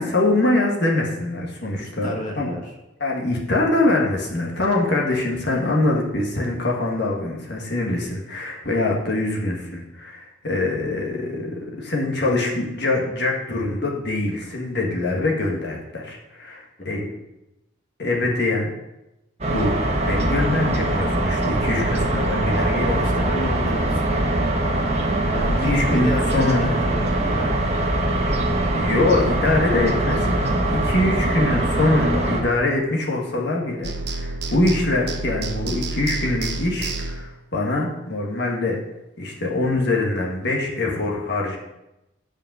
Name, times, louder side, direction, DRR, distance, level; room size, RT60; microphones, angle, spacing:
voice 1, 0.0-2.5 3.0-17.0 18.0-18.7 19.5-19.7 20.1-23.1 25.7-26.8 28.7-38.8 39.2-41.6, left 2 dB, 55° left, -1 dB, 1.7 m, -23 dB
voice 2, 1.8-2.6 16.8-17.1 22.9-24.3 25.3-27.9, equal, 40° left, 0 dB, 1.7 m, -32 dB
sound 1, 19.4-32.4, right 1 dB, 35° right, 1.4 m, -22 dB
sound 2, 33.8-37.4, right 3 dB, 55° right, 0.9 m, -29 dB
8.7 x 5.2 x 6.8 m, 0.92 s
head